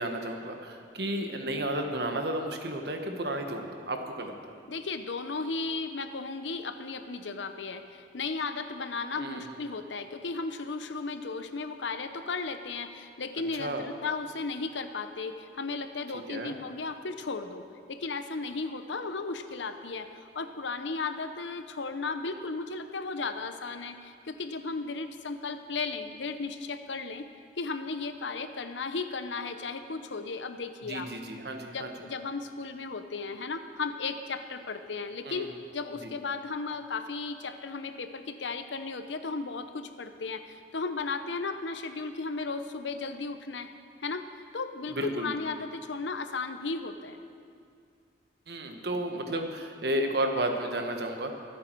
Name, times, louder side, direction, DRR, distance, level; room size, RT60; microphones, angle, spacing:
voice 1, 0.0-4.3 9.2-9.6 13.6-13.9 16.3-16.6 30.8-31.9 35.2-35.5 36.0-36.1 44.9-45.3 48.5-51.3, right 1 dB, 60° right, 4 dB, 1.3 m, -32 dB
voice 2, 4.7-27.3 27.6-31.1 31.7-43.7 44.0-44.3 44.5-47.2, left 4 dB, 85° left, 9 dB, 0.8 m, -35 dB
24.0 x 8.5 x 4.6 m, 2.3 s
head